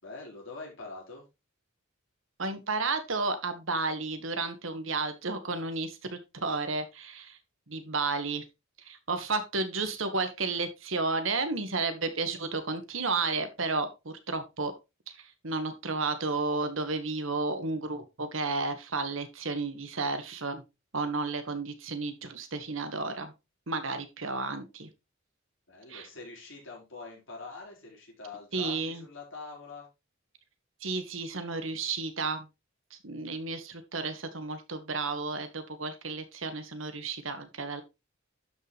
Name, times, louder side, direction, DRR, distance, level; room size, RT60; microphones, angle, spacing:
voice 1, 0.0-1.2 25.7-29.9, left 3 dB, 65° left, -2 dB, 4.9 m, -44 dB
voice 2, 2.4-7.4 7.7-8.4 8.8-14.7 15.1-20.6 20.9-23.3 23.7-24.9 25.9-26.1 28.5-29.0 30.8-32.5 32.9-37.8, right 3 dB, 75° right, 9 dB, 1.6 m, -32 dB
12.0 x 5.6 x 3.3 m, 0.25 s
head